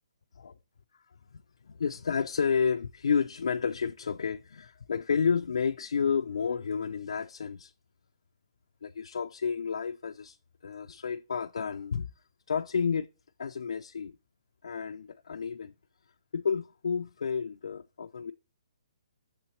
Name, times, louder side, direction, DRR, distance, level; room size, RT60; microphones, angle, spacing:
voice 1, 1.3-7.7 8.8-10.4 10.6-12.1 12.5-13.1 13.4-14.2 14.6-15.7 16.3-18.3, left 6 dB, 80° left, 0.3 m, -31 dB
6.4 x 5.7 x 3.1 m
hypercardioid pair, 160°, 3 cm